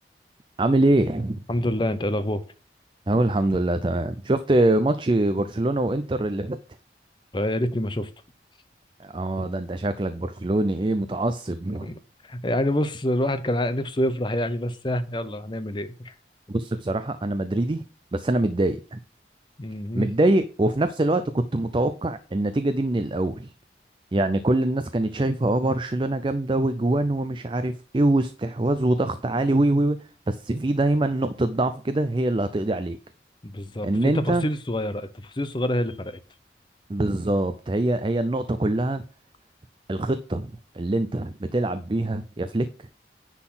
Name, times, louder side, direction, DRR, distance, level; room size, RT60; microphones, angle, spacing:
voice 1, 0.6-1.4 3.1-6.6 9.0-11.9 16.5-17.8 18.1-19.0 20.0-23.5 24.1-30.0 30.3-33.0 33.8-34.4 36.9-39.0 39.9-42.7, right 2 dB, 25° right, 0.4 m, -24 dB
voice 2, 1.5-2.4 7.3-8.1 11.8-11.9 12.2-16.1 19.6-20.1 29.3-29.4 33.4-36.2, left 1 dB, 25° left, 0.7 m, -27 dB
10.0 x 3.9 x 5.9 m
head